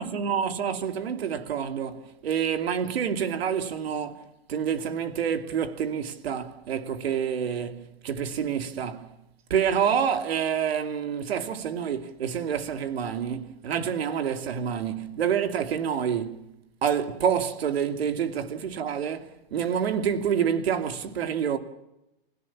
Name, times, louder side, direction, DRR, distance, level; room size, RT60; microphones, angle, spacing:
voice 1, 0.0-4.2 4.5-9.1 9.5-16.4 16.8-21.6, right 8 dB, 85° right, 2.8 m, -28 dB
29.0 x 16.5 x 7.3 m
supercardioid pair, 170°, 30 cm